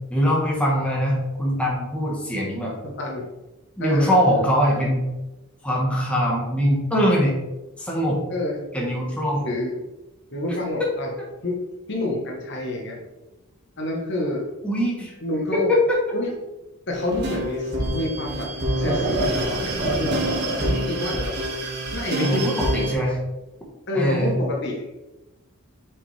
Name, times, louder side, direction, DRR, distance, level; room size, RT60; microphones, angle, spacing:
voice 1, 0.1-2.7 3.8-5.0 5.6-7.3 7.8-8.2 8.7-9.4 10.8-10.9 14.6-15.1 15.5-16.0 22.2-23.2 23.9-24.4, equal, 5° left, -4 dB, 1.2 m, -22 dB
voice 2, 2.8-3.3 3.8-4.1 8.3-8.6 9.3-9.7 10.3-11.1 11.4-11.6 11.9-13.0 13.8-14.4 15.2-15.7 16.1-16.3 16.9-18.5 18.8-21.3 21.9-22.5 23.9-24.8, left 1 dB, 50° left, 0 dB, 1.2 m, -28 dB
sound 1, 16.9-22.9, right 1 dB, 50° right, 1.8 m, -26 dB
6.1 x 5.1 x 3.3 m, 1.0 s
head